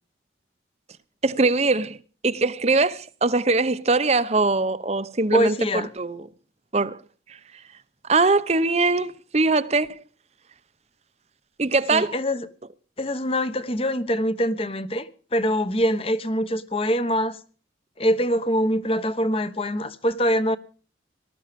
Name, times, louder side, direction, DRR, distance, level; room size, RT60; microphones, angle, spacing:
voice 1, 1.2-2.0 2.2-6.3 6.7-7.0 8.1-10.0 11.6-12.1, right 3 dB, 35° right, 0.8 m, -22 dB
voice 2, 5.3-5.9 11.9-12.5 13.0-17.4 18.0-20.6, equal, 30° left, 1.1 m, -24 dB
19.0 x 13.0 x 5.2 m
head